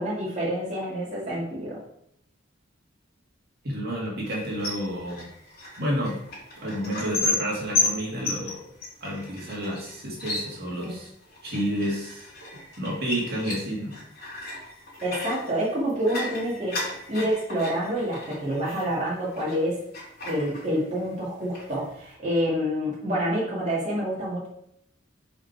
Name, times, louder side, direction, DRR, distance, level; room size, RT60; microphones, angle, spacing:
voice 1, 0.0-1.8 10.8-11.0 15.0-19.8 20.2-24.5, equal, 40° right, -6 dB, 1.8 m, -28 dB
voice 2, 3.6-5.3 5.8-6.2 6.6-8.7 9.0-11.1 11.4-12.3 12.8-13.9, equal, 55° right, -3 dB, 2.0 m, -30 dB
sound 1, 4.2-19.6 19.9-21.1 21.4-22.1, left 2 dB, 55° left, 2.8 m, -34 dB
5.5 x 4.9 x 4.5 m, 0.74 s
head